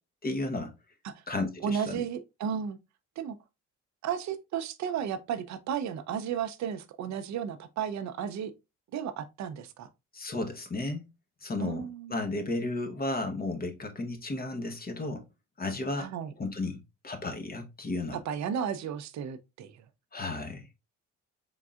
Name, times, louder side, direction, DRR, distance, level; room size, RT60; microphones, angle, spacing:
voice 1, 0.2-0.7 1.3-2.0 10.1-11.0 11.4-15.2 15.6-16.1 16.4-16.8 17.0-18.2 20.1-20.7, left 2 dB, 30° left, 0.9 m, -33 dB
voice 2, 1.6-2.8 3.2-3.4 4.0-8.5 8.9-9.9 11.6-12.2 16.0-16.3 18.3-19.7, right 8 dB, 65° right, 0.6 m, -33 dB
3.9 x 3.6 x 2.3 m
cardioid pair, 90°, 30 cm